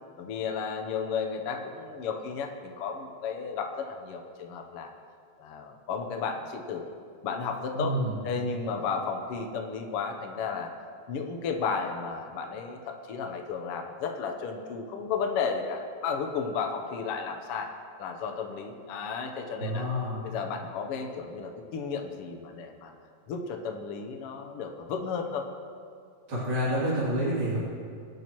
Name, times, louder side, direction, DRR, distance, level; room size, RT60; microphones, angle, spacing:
voice 1, 0.2-4.9 5.4-6.9 7.2-8.0 8.2-10.7 11.1-19.9 20.2-22.9 23.3-25.5, left 5 dB, 70° left, 3 dB, 1.5 m, -33 dB
voice 2, 7.8-8.2 19.6-20.2 26.3-27.6, equal, 45° right, -9 dB, 3.4 m, -28 dB
25.0 x 9.0 x 3.0 m, 2.3 s
omnidirectional pair, 3.5 m